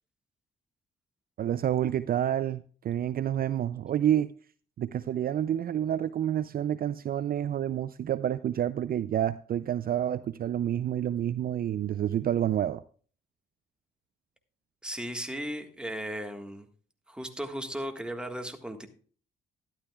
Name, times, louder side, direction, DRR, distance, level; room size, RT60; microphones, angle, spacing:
voice 1, 1.4-4.3 4.8-12.8, right 10 dB, 50° right, 0.4 m, -28 dB
voice 2, 14.8-16.7 17.1-18.9, equal, 5° right, 1.6 m, -36 dB
13.0 x 11.5 x 2.3 m
cardioid pair, 90°, 20 cm